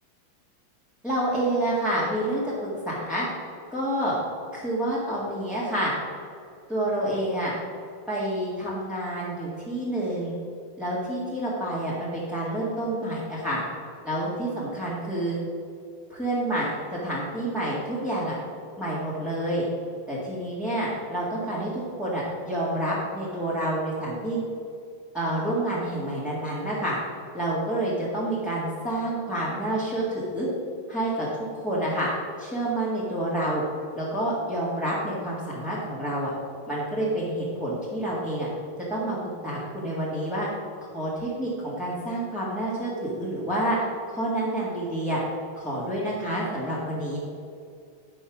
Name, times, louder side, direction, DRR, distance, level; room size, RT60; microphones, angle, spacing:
voice 1, 1.0-3.3 3.7-4.1 4.5-5.9 6.7-7.5 8.1-10.3 10.8-13.6 14.0-15.4 16.1-18.3 18.8-19.6 20.1-24.4 25.1-27.0 27.3-30.5 30.9-31.3 31.5-32.1 32.4-33.6 33.9-36.3 36.7-38.5 38.9-39.2 39.4-40.5 40.9-43.8 44.1-45.2 45.5-47.2, right 1 dB, ahead, -9 dB, 1.6 m, -28 dB
11.0 x 5.5 x 6.1 m, 2.4 s
omnidirectional pair, 2.4 m